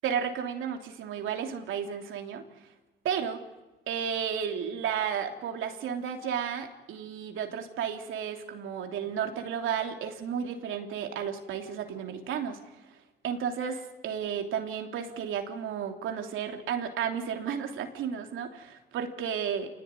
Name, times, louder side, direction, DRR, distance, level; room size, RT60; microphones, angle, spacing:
voice 1, 0.0-2.4 3.0-3.4 3.9-12.6 13.2-19.7, right 8 dB, 80° right, 4 dB, 3.3 m, -33 dB
27.0 x 19.0 x 9.8 m, 1.1 s
cardioid pair, 90°, 20 cm